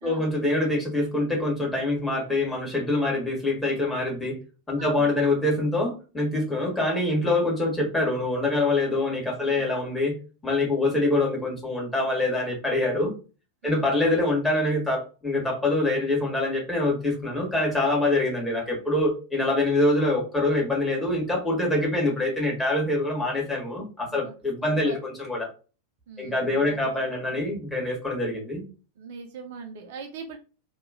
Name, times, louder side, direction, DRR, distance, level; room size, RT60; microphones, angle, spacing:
voice 1, 0.0-4.4 4.7-10.2 10.4-13.1 13.6-25.5 26.2-28.6, left 2 dB, 10° left, -2 dB, 1.4 m, -25 dB
voice 2, 4.8-5.1 9.4-9.7 13.6-13.9 24.1-24.3 24.6-25.0 26.1-26.9 29.0-30.4, right 5 dB, 55° right, 4 dB, 0.5 m, -41 dB
2.9 x 2.3 x 2.4 m, 0.34 s
figure-of-eight pair, 90°, 0 cm